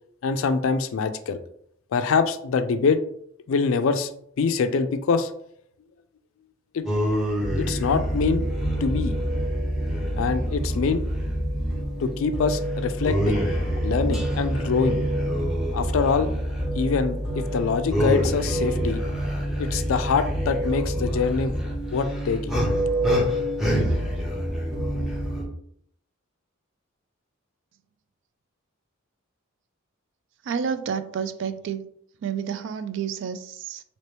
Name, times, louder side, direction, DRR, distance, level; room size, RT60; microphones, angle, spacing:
voice 1, 0.2-1.4 1.9-3.0 3.5-4.1 4.4-5.3 6.7-6.9 7.6-8.4 8.8-9.2 10.2-11.0 12.0-13.4 13.8-15.0 15.7-16.3 16.8-19.0 19.6-21.6 21.9-22.6, left 5 dB, 65° left, 10 dB, 0.3 m, -24 dB
sound 1, 6.9-25.4, equal, ahead, 0.8 m, -26 dB
voice 2, 30.4-31.9 32.2-33.8, right 7 dB, 60° right, 10 dB, 0.3 m, -30 dB
2.9 x 2.9 x 3.2 m, 0.67 s
head